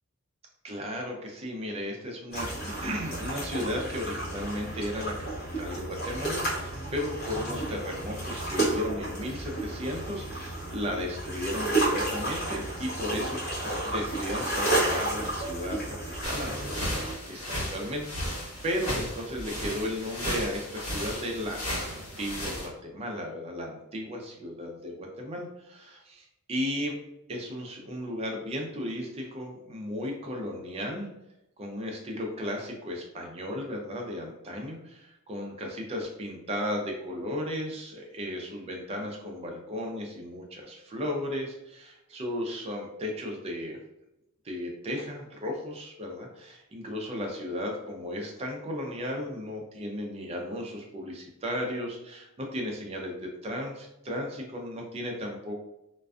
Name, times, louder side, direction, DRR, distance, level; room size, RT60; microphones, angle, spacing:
voice 1, 0.6-5.3 5.6-16.0 16.2-26.9 27.3-31.1 31.6-43.8 44.4-55.6, left 1 dB, 30° right, 1 dB, 0.4 m, -35 dB
sound 1, 2.3-17.1, right 2 dB, 45° left, 0.9 m, -32 dB
sound 2, 16.2-22.7, equal, 75° left, 1.2 m, -34 dB
2.4 x 2.2 x 2.3 m, 0.89 s
head